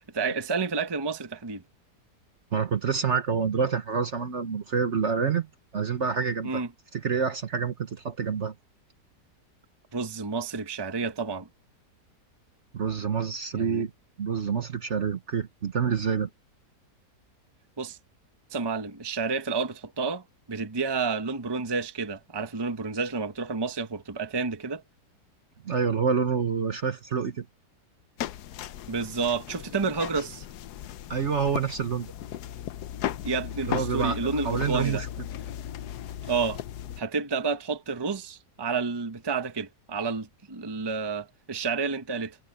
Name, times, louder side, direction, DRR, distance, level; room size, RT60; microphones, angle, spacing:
voice 1, 0.1-1.6 6.4-6.7 9.9-11.5 13.5-13.8 17.8-18.0 18.5-24.8 28.9-30.5 33.2-35.0 36.3-36.6 37.0-42.4, right 4 dB, 15° right, 1.0 m, -30 dB
voice 2, 2.5-5.5 5.7-6.6 6.9-8.5 12.7-13.9 14.2-16.3 25.6-27.5 31.1-32.1 33.7-35.1, right 6 dB, 45° right, 1.2 m, -27 dB
sound 1, 28.2-37.0, left 11 dB, 70° left, 1.2 m, -36 dB
omnidirectional pair, 1.8 m